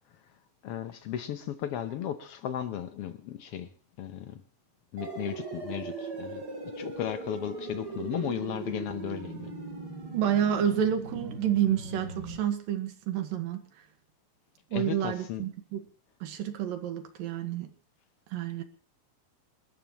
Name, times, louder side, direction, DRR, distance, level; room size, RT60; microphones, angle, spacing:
voice 1, 0.6-3.7 4.0-4.4 4.9-6.4 6.8-9.5 14.7-15.4, left 10 dB, 85° left, 9 dB, 1.3 m, -35 dB
sound 1, 5.0-12.4, right 3 dB, 30° right, 3.4 m, -39 dB
voice 2, 10.1-13.6 14.7-15.8 16.2-17.7 18.3-18.6, right 9 dB, 80° right, 7 dB, 3.3 m, -29 dB
28.5 x 13.0 x 3.1 m, 0.40 s
omnidirectional pair, 4.0 m